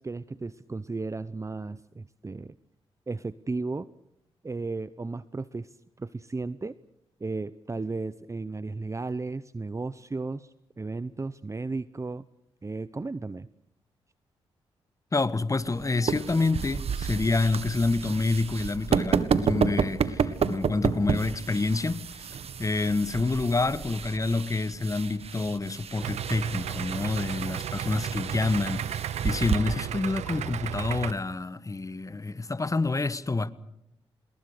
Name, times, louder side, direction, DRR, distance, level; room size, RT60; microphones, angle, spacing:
voice 1, 0.0-2.5 3.1-3.9 4.4-6.7 7.2-12.2 12.6-13.5, right 3 dB, 25° right, 0.8 m, -34 dB
voice 2, 15.1-22.3 22.6-33.5, left 3 dB, 30° left, 1.4 m, -28 dB
sound 1, 15.6-29.6, right 6 dB, 65° right, 1.7 m, -31 dB
Idling, 26.0-31.1, right 10 dB, 80° right, 0.9 m, -34 dB
27.0 x 21.0 x 6.7 m
supercardioid pair, 50°, 11 cm